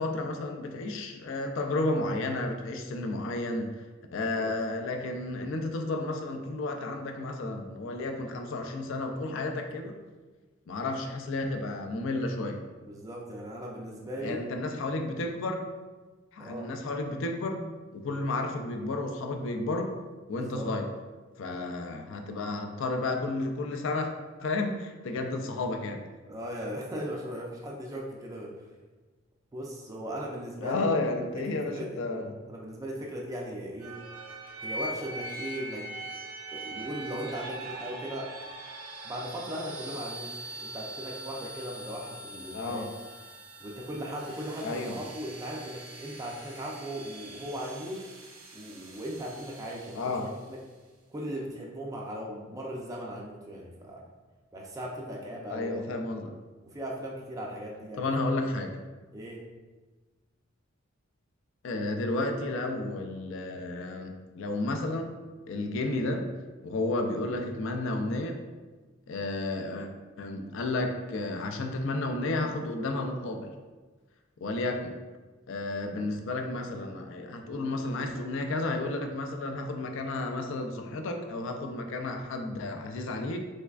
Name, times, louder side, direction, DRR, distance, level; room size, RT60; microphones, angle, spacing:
voice 1, 0.0-3.9 4.1-9.9 10.7-12.6 14.2-15.6 16.3-17.6 17.9-19.9 20.3-20.9 21.4-24.1 24.4-26.0 30.6-32.4 42.5-42.9 44.6-45.0 49.9-50.3 55.5-56.3 58.0-58.7 61.6-65.1 65.5-66.3 66.6-68.4 69.1-69.9 70.2-73.5 74.4-75.0 75.5-83.4, left 2 dB, 65° left, 4 dB, 0.4 m, -32 dB
voice 2, 12.8-14.4 16.4-16.7 20.3-20.7 21.5-21.7 26.3-28.5 29.5-30.9 31.3-31.9 32.5-34.0 34.6-35.9 36.5-38.3 39.0-40.3 40.6-42.9 43.6-48.0 48.5-50.1 50.5-50.6 51.1-54.1 54.5-55.8 56.7-58.1 59.1-59.4 75.7-76.0, equal, 15° right, -2 dB, 0.4 m, -38 dB
sound 1, 33.8-50.5, right 1 dB, 85° right, 0.6 m, -42 dB
3.4 x 3.2 x 2.3 m, 1.3 s
head